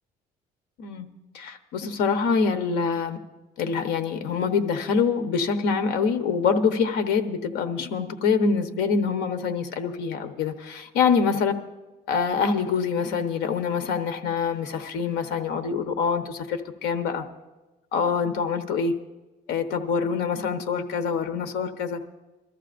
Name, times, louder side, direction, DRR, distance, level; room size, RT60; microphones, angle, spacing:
voice 1, 1.3-3.2 3.6-11.6 12.1-17.2 17.9-18.9 19.5-22.0, left 5 dB, 90° left, 7 dB, 0.9 m, -25 dB
23.0 x 14.0 x 2.5 m, 1.1 s
cardioid pair, 110°, 17 cm